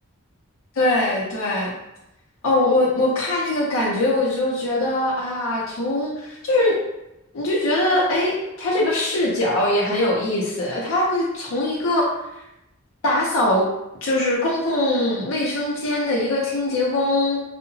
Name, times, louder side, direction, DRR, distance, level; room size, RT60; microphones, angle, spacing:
voice 1, 0.8-1.7 2.4-6.8 7.3-12.1 13.0-13.7 14.0-17.4, left 1 dB, 85° left, -4 dB, 0.5 m, -22 dB
2.8 x 2.0 x 2.6 m, 0.90 s
head